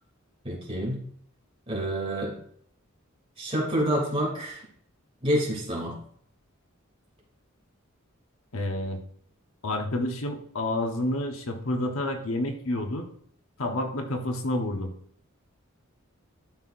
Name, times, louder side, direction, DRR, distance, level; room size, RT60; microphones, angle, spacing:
voice 1, 0.4-1.0 1.7-2.3 3.4-4.6 5.2-6.0, equal, 25° right, -2 dB, 2.8 m, -28 dB
voice 2, 8.5-9.0 9.6-13.1 13.6-14.9, left 1 dB, 80° left, 4 dB, 1.2 m, -29 dB
12.0 x 5.7 x 2.6 m, 0.62 s
head